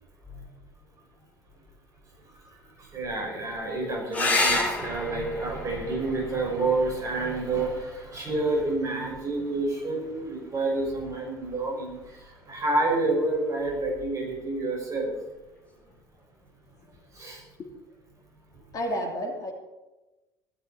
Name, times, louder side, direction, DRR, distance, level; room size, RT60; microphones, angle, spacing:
voice 1, 2.8-15.1 17.1-17.4, right 2 dB, 30° right, 0 dB, 6.0 m, -29 dB
sound 1, 4.1-9.1 11.0-11.7 15.1-15.2 15.5-15.6, left 2 dB, 15° left, 6.8 m, -31 dB
voice 2, 18.7-19.5, equal, 40° left, 1 dB, 3.1 m, -30 dB
17.0 x 13.0 x 4.4 m, 1.1 s
figure-of-eight pair, 60°, 10 cm